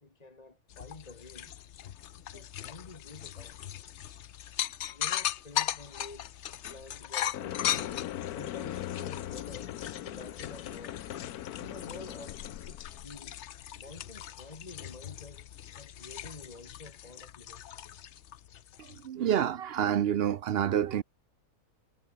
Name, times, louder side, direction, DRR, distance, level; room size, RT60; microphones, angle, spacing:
voice 1, 0.0-1.5 2.3-3.6 4.9-6.3 6.7-9.7 10.0-11.0 11.6-13.3 13.7-15.5 15.7-17.7, left 3 dB, 25° left, 1.7 m, -49 dB
sound 1, 0.7-19.1, left 11 dB, 60° left, 0.9 m, -39 dB
sound 2, 7.3-13.4, left 12 dB, 80° left, 1.2 m, -40 dB
voice 2, 18.8-21.0, right 9 dB, 60° right, 0.6 m, -28 dB
omnidirectional pair, 1.6 m